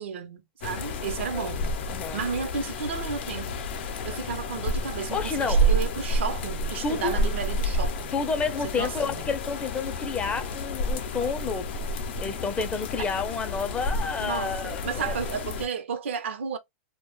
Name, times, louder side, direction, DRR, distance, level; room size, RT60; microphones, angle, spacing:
voice 1, 0.0-1.8 2.1-3.6 4.0-8.2 8.6-9.4 14.2-16.6, right 6 dB, 85° right, 0.6 m, -33 dB
sound 1, 0.6-15.7, equal, 70° left, 0.5 m, -30 dB
voice 2, 1.9-2.2 5.1-5.7 6.8-7.2 8.1-11.8 12.2-15.1, left 5 dB, 20° left, 0.4 m, -30 dB
2.1 x 2.0 x 3.0 m
hypercardioid pair, 130°, 6 cm